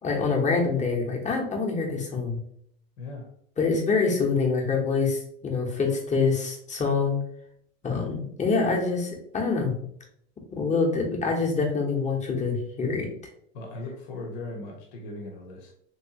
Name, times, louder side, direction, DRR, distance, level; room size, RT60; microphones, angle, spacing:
voice 1, 0.0-2.4 3.6-7.2 7.8-9.8 10.5-13.1, left 4 dB, 25° left, 0 dB, 1.0 m, -25 dB
voice 2, 3.0-3.3 13.5-15.7, left 2 dB, 80° left, 1 dB, 1.0 m, -38 dB
3.1 x 3.0 x 2.9 m, 0.68 s
supercardioid pair, 105°, 32 cm